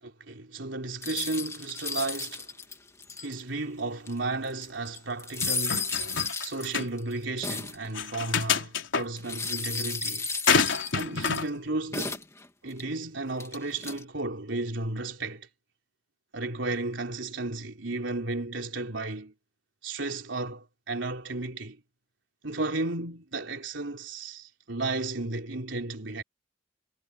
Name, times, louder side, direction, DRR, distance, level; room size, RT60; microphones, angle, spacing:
voice 1, 0.0-2.5 3.2-5.9 6.4-10.3 10.9-12.2 12.6-15.5 16.3-19.3 19.8-21.8 22.4-26.2, right 2 dB, 85° right, 3.3 m, -33 dB
sound 1, 1.0-3.6 4.1-4.2 4.4-7.9 9.2-11.5 11.9-12.8 13.4-14.0, left 4 dB, 15° left, 2.1 m, -34 dB
sound 2, 5.4-6.4 6.7-6.9 7.9-9.0 10.5-11.5, left 6 dB, 85° left, 3.8 m, -27 dB
head